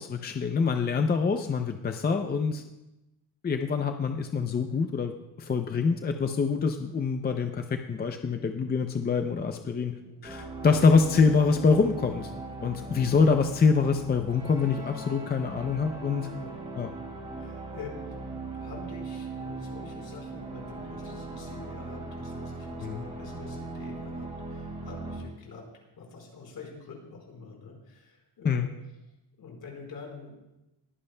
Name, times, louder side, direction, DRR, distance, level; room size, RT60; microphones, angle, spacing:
voice 1, 0.0-2.6 3.4-9.9 10.2-12.3 12.6-16.3 16.8-16.9 22.8-23.0 28.4-28.7, left 5 dB, 25° left, 6 dB, 0.5 m, -25 dB
voice 2, 9.9-10.2 12.6-12.9 16.3-16.5 17.3-25.7 26.0-28.7 29.4-30.4, left 4 dB, 65° left, 0 dB, 4.4 m, -46 dB
sound 1, 10.2-25.2, right 3 dB, 15° right, 5.0 m, -39 dB
21.0 x 15.0 x 2.2 m, 0.96 s
wide cardioid pair, 155°, 40 cm